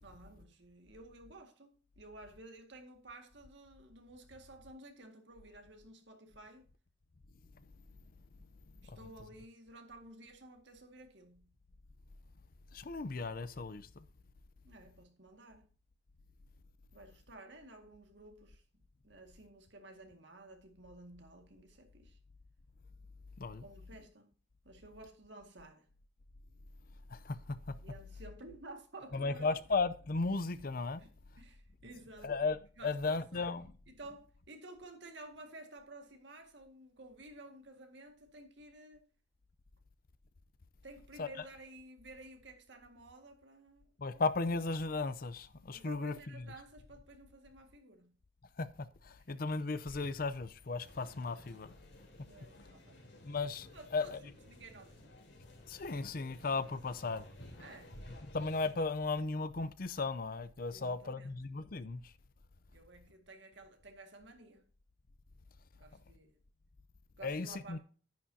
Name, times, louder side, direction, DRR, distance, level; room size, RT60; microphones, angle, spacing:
voice 1, 0.0-6.7 8.8-11.5 14.6-15.7 16.9-18.6 19.0-22.2 23.6-24.3 24.6-25.9 27.8-29.5 31.0-31.1 31.4-32.3 32.8-33.5 33.9-39.1 40.8-43.9 45.7-48.2 49.3-49.4 52.3-53.1 53.7-55.1 56.6-56.7 57.6-58.0 60.7-61.4 62.7-64.6 65.7-66.4 67.2-67.8, right 2 dB, 70° right, 1.9 m, -53 dB
voice 2, 12.7-14.1 23.4-23.6 27.1-27.8 29.1-31.0 32.2-33.7 41.2-41.3 44.0-46.5 48.6-51.7 53.2-54.2 55.7-57.3 58.3-62.1 67.2-67.8, left 3 dB, 50° left, 0.6 m, -36 dB
sound 1, 50.8-58.7, left 1 dB, 70° left, 3.4 m, -55 dB
10.5 x 10.0 x 2.8 m
head